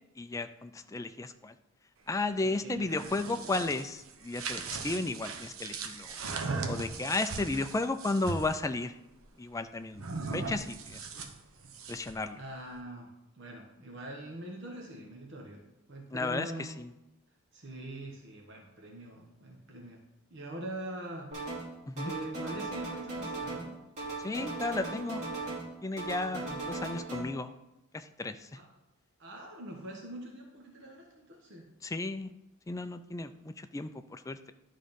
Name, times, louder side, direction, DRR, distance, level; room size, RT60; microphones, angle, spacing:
voice 1, 0.2-1.5 2.1-6.2 6.7-9.0 9.4-10.0 10.3-11.1 11.9-12.4 16.1-16.9 21.9-22.1 24.2-25.2 25.8-27.5 27.9-28.5 31.8-32.3 32.7-34.5, left 2 dB, 15° left, 9 dB, 0.3 m, -34 dB
voice 2, 2.4-3.2 12.3-15.6 15.9-16.7 17.5-20.0 20.3-21.3 22.0-23.8 26.2-26.6 28.5-28.7 29.2-31.6, right 1 dB, 60° right, 0 dB, 1.1 m, -43 dB
sound 1, 2.8-8.6 10.0-12.2, right 4 dB, 80° right, 0.9 m, -38 dB
sound 2, 21.3-21.7 22.0-23.7 24.0-25.7 26.0-27.2, right 2 dB, 35° right, 2.6 m, -37 dB
11.0 x 3.7 x 5.3 m, 0.92 s
head